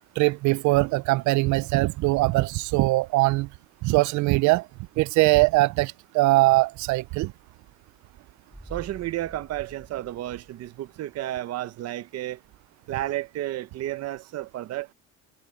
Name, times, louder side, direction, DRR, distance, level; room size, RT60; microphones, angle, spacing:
voice 1, 0.2-3.5 3.8-4.6 5.0-7.3, right 21 dB, 75° right, 0.4 m, -21 dB
sound 1, 8.5-11.2 11.5-11.6, right 1 dB, 5° right, 2.9 m, -48 dB
voice 2, 8.7-12.4 12.9-14.9, right 14 dB, 60° right, 0.8 m, -32 dB
cardioid pair, 140°, 29 cm